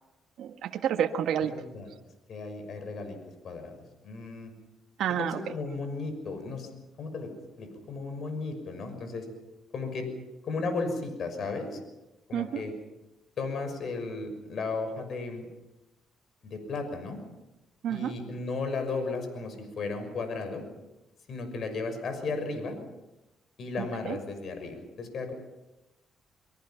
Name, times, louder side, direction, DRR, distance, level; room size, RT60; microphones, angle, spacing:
voice 1, 0.4-1.5 5.0-5.4 12.3-12.6 17.8-18.1 23.8-24.2, right 9 dB, 75° right, 4 dB, 1.6 m, -29 dB
voice 2, 1.5-1.9 2.3-3.2 3.4-3.7 4.0-4.5 5.2-6.7 7.0-7.3 7.6-9.3 9.7-10.1 10.4-11.8 12.3-12.7 13.4-15.5 16.4-17.2 17.9-20.6 21.3-22.8 23.6-25.3, left 3 dB, 60° left, 7 dB, 6.1 m, -34 dB
25.0 x 23.5 x 5.9 m, 0.98 s
cardioid pair, 90°, 0 cm